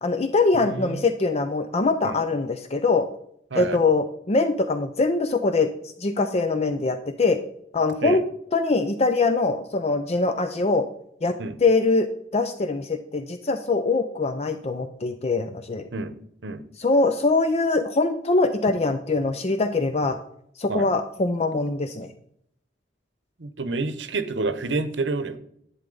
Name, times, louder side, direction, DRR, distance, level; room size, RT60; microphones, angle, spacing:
voice 1, 0.0-3.1 3.5-7.4 7.7-8.2 8.5-10.9 11.2-11.4 11.6-15.9 16.8-20.2 20.6-22.1, left 3 dB, 35° left, 9 dB, 0.5 m, -23 dB
voice 2, 0.5-1.0 2.0-2.2 3.5-3.8 8.0-8.2 11.4-11.6 15.9-16.1 16.4-16.6 20.7-20.9 23.4-25.4, right 3 dB, 75° right, 12 dB, 0.9 m, -28 dB
11.0 x 8.3 x 3.9 m, 0.70 s
head